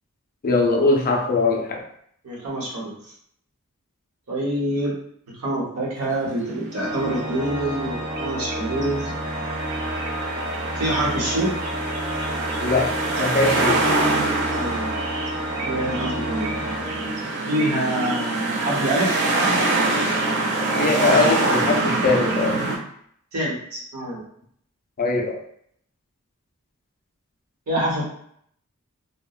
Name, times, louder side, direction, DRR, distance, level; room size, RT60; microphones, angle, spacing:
voice 1, 0.4-1.9 9.1-9.2 12.6-13.9 20.8-22.6 25.0-25.4, left 3 dB, 40° left, 2 dB, 0.4 m, -21 dB
voice 2, 2.2-2.9 4.3-4.9 5.4-9.1 10.8-11.6 14.5-14.9 15.6-16.5 17.5-19.2 23.3-24.2 27.7-28.0, right 1 dB, 70° right, -4 dB, 0.9 m, -26 dB
sound 1, 6.1-22.8, right 2 dB, 55° right, 0.5 m, -25 dB
Organ, 6.7-17.6, equal, 25° right, 1.0 m, -30 dB
2.8 x 2.1 x 2.3 m, 0.67 s
head